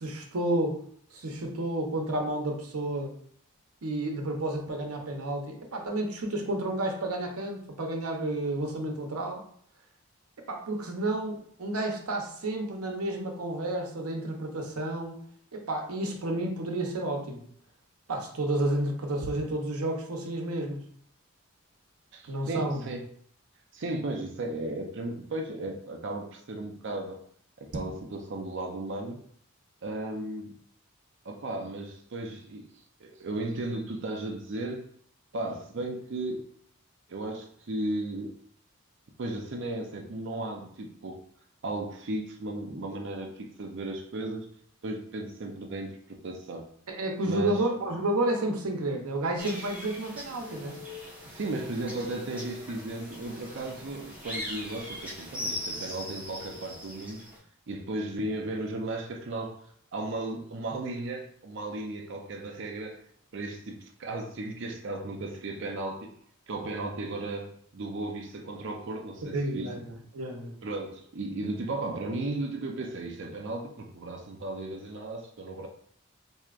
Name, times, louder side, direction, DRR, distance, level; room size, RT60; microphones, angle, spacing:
voice 1, 0.0-0.8 1.1-3.1 3.8-9.4 10.5-15.2 15.5-17.4 18.1-20.8 22.3-22.9 46.9-50.8 69.3-70.5, right 1 dB, 85° right, 3 dB, 0.8 m, -31 dB
voice 2, 22.1-23.0 23.7-27.2 27.6-29.2 29.8-30.5 31.2-32.7 33.0-34.9 35.3-36.4 37.1-38.3 39.2-41.2 41.6-44.5 44.8-46.6 47.3-47.6 51.3-57.2 57.7-59.6 59.9-63.0 63.3-66.2 66.5-69.7 70.6-75.7, right 2 dB, 55° right, 3 dB, 0.5 m, -35 dB
sound 1, 49.4-57.4, left 1 dB, 5° right, 1.0 m, -40 dB
4.5 x 2.7 x 2.4 m, 0.62 s
head